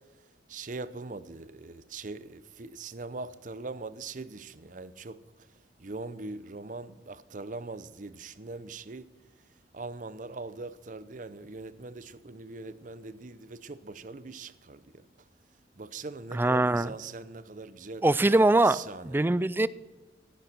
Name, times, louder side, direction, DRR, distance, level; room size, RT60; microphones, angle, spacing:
voice 1, 0.5-5.2 5.8-9.0 9.7-15.0 15.8-18.0 18.7-19.2, right 3 dB, 45° right, 0.7 m, -41 dB
voice 2, 16.3-16.9 18.0-19.7, right 2 dB, 10° right, 0.4 m, -23 dB
16.0 x 10.5 x 6.0 m
head